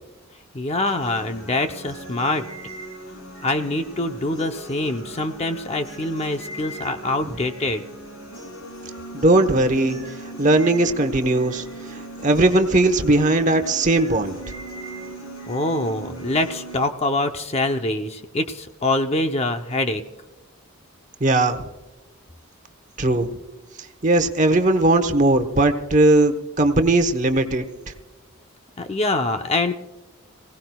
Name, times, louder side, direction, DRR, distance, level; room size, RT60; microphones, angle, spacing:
voice 1, 0.5-2.4 3.4-7.8 15.5-20.0 28.8-29.7, left 2 dB, 30° left, 6 dB, 0.7 m, -24 dB
sound 1, 0.8-16.8, right 2 dB, 75° left, 4.7 m, -38 dB
voice 2, 9.1-10.0 10.4-11.6 11.9-14.4 21.2-21.7 23.0-23.3 24.0-27.9, right 2 dB, 35° right, 8 dB, 1.0 m, -18 dB
26.0 x 17.5 x 2.3 m, 1.1 s
head